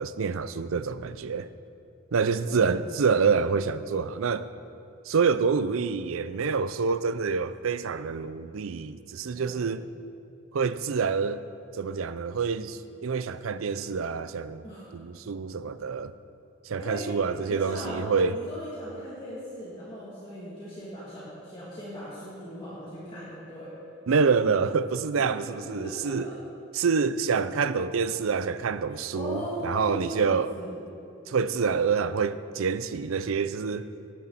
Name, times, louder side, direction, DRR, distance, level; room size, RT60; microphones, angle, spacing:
voice 1, 0.0-1.5 2.1-4.5 5.1-9.9 10.5-11.4 11.8-14.6 14.9-16.2 16.6-18.4 24.1-26.3 26.7-30.5 31.3-33.8, right 5 dB, 85° right, 0.5 m, -27 dB
voice 2, 2.5-2.9 9.3-9.6 14.6-14.9 16.8-17.1 17.4-23.7 25.3-26.3 29.1-30.8, equal, 25° left, 2.5 m, -38 dB
18.0 x 10.0 x 4.1 m
head